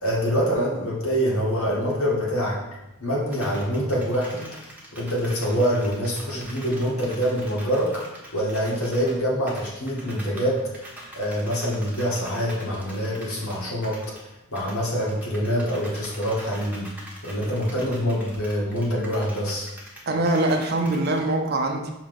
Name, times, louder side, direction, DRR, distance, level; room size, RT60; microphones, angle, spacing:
voice 1, 0.0-2.6 3.0-4.5 4.9-8.0 8.3-10.6 11.1-14.0 14.5-16.9 17.2-19.7, equal, 70° left, -5 dB, 1.9 m, -25 dB
sound 1, 3.3-9.1 9.5-14.2 14.5-21.2, right 1 dB, 5° right, 1.2 m, -43 dB
voice 2, 20.1-21.9, right 2 dB, 45° right, 4 dB, 0.6 m, -23 dB
5.8 x 3.6 x 5.4 m, 0.96 s
head